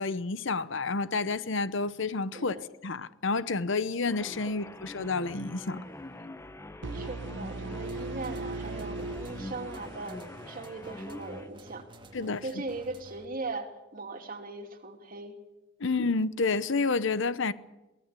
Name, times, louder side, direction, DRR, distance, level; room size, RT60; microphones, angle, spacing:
voice 1, 0.0-2.5 2.8-5.8 12.1-12.4 15.8-17.5, left 3 dB, 70° left, 0.9 m, -29 dB
voice 2, 2.3-2.7 4.5-4.8 6.9-11.9 12.1-15.4 15.8-16.0, right 3 dB, 45° right, 2.9 m, -39 dB
sound 1, 4.1-11.5, left 1 dB, 15° left, 1.1 m, -44 dB
sound 2, 6.8-10.7, right 3 dB, 65° right, 0.7 m, -39 dB
sound 3, 7.9-13.4, right 1 dB, 25° right, 2.0 m, -51 dB
23.5 x 17.0 x 8.4 m
head